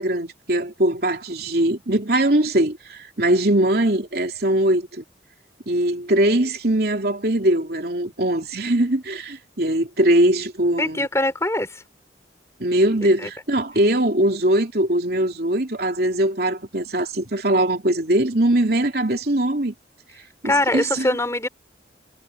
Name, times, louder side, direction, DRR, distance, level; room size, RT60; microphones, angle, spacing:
voice 1, 0.0-5.0 5.7-11.1 12.6-19.7 20.4-21.1, right 1 dB, 55° right, 3.3 m, -21 dB
voice 2, 10.8-11.8 13.0-13.3 20.4-21.5, left 1 dB, 15° left, 4.6 m, -23 dB
head